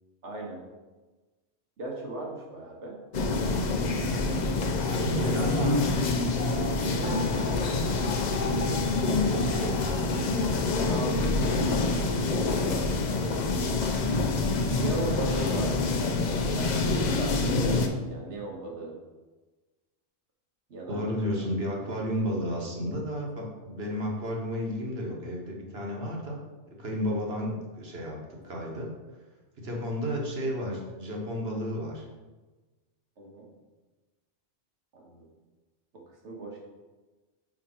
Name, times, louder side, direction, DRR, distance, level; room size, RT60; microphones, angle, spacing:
voice 1, 0.2-0.6 1.8-3.0 5.0-5.4 6.7-7.7 8.5-9.7 10.7-13.4 14.7-15.8 16.5-16.7 17.2-19.0 20.7-21.4 33.2-33.5 34.9-35.3 35.9-36.6, right 2 dB, 85° right, -1 dB, 1.6 m, -38 dB
sound 1, 3.1-17.9, left 3 dB, 50° left, 0.6 m, -26 dB
voice 2, 4.8-6.0 15.4-15.5 16.0-16.1 20.9-26.4 26.8-28.9 29.6-32.1, equal, 60° right, -1 dB, 1.4 m, -32 dB
5.1 x 5.0 x 4.3 m, 1.2 s
omnidirectional pair, 1.2 m